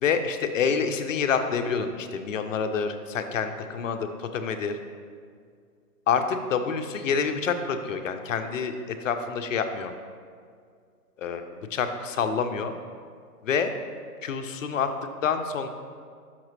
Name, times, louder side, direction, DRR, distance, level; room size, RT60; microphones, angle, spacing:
voice 1, 0.0-4.7 6.1-9.9 11.2-11.4 11.7-12.7 13.4-13.7 14.2-14.9 15.2-15.7, left 6 dB, 55° left, 7 dB, 0.6 m, -27 dB
5.9 x 5.8 x 3.2 m, 2.2 s
hypercardioid pair, 155°, 47 cm